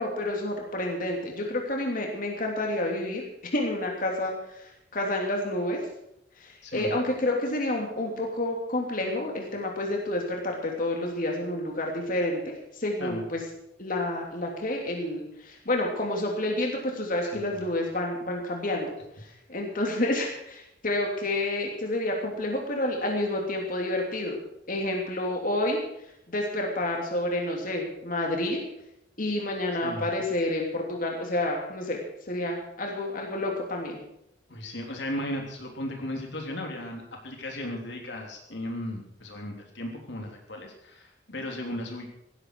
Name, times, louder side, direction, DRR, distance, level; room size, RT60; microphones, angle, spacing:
voice 1, 0.0-3.2 3.5-5.8 6.4-13.4 13.8-24.4 24.7-25.8 26.3-28.6 29.2-32.0 32.3-34.0, left 1 dB, 50° left, 1 dB, 3.1 m, -29 dB
voice 2, 6.6-6.9 13.0-13.3 17.3-17.6 29.8-30.1 34.5-42.1, left 1 dB, 75° left, 1 dB, 3.4 m, -36 dB
17.0 x 14.5 x 4.8 m, 0.79 s
head